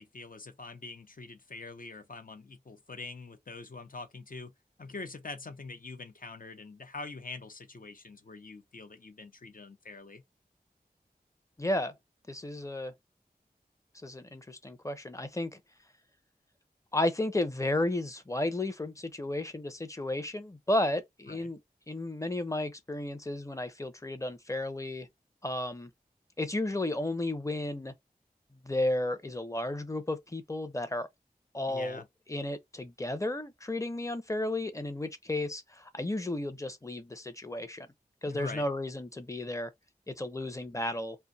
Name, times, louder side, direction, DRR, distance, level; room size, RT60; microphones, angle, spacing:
voice 1, 0.0-4.5 4.8-10.2 21.3-21.5 31.7-32.1 38.3-38.7, left 3 dB, 60° left, 0.8 m, -44 dB
voice 2, 11.6-11.9 12.3-12.9 14.0-15.6 16.9-21.6 21.9-25.1 25.4-25.9 26.4-27.9 28.6-31.1 31.5-32.0 32.3-37.9 38.2-39.7 40.1-41.2, left 1 dB, 20° left, 0.7 m, -33 dB
2.6 x 2.3 x 3.9 m
wide cardioid pair, 65°, 16 cm